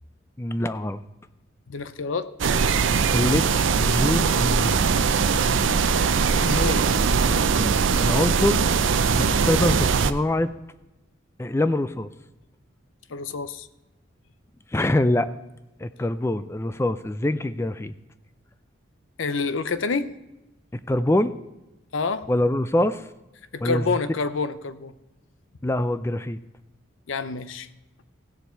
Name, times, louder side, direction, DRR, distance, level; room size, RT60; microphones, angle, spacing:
voice 1, 0.4-1.0 3.1-4.8 7.6-8.6 9.1-10.5 11.4-12.1 14.7-15.3 15.8-17.9 20.9-21.3 22.3-23.1 23.6-23.9 25.6-26.4, left 1 dB, 15° left, 12 dB, 0.3 m, -24 dB
voice 2, 1.7-2.3 6.4-6.9 13.1-13.7 19.2-20.1 21.9-22.3 23.5-24.9 27.1-27.7, left 4 dB, 85° left, 13 dB, 0.7 m, -27 dB
sound 1, 2.4-10.1, right 5 dB, 80° right, 0.5 m, -21 dB
16.0 x 7.0 x 4.5 m, 0.99 s
head